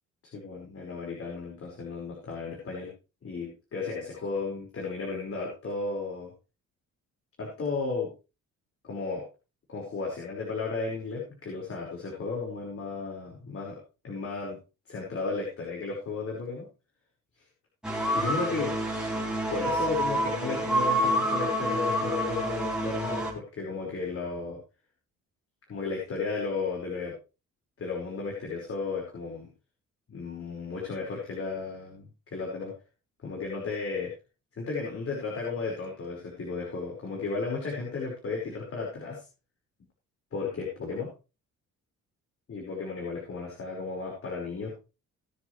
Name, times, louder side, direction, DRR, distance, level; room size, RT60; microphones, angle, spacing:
voice 1, 0.3-2.9 3.2-6.3 7.4-8.1 8.8-9.2 9.7-13.8 14.0-14.6 14.9-16.7 18.1-18.8 19.5-24.6 25.7-27.1 27.8-29.5 30.1-32.7 33.2-34.1 34.6-39.2 40.3-41.1 42.5-44.7, left 4 dB, 50° left, -2 dB, 5.3 m, -34 dB
sound 1, 17.8-23.3, equal, 5° right, 4.5 m, -28 dB
20.5 x 7.5 x 3.3 m, 0.31 s
cardioid pair, 90°, 30 cm